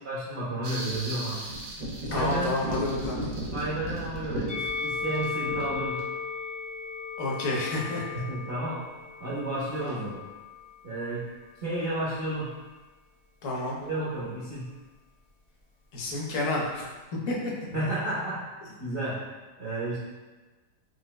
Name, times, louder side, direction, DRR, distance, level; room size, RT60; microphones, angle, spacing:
voice 1, 0.0-1.4 2.1-2.8 3.5-6.0 8.2-8.8 9.2-10.2 10.8-11.2 11.6-12.5 13.8-14.7 17.7-18.4 18.8-19.2 19.6-20.0, right 2 dB, 90° right, -9 dB, 0.5 m, -31 dB
sound 1, 0.6-6.0, right 1 dB, 70° right, 1.2 m, -35 dB
voice 2, 2.1-3.2 7.2-8.1 9.8-9.9 13.4-13.8 15.9-16.9 17.3-17.4, left 2 dB, 60° left, -4 dB, 0.8 m, -30 dB
Musical instrument, 4.5-10.9 11.7-12.7, left 5 dB, 20° left, 0.7 m, -36 dB
4.7 x 2.1 x 2.2 m, 1.2 s
omnidirectional pair, 1.9 m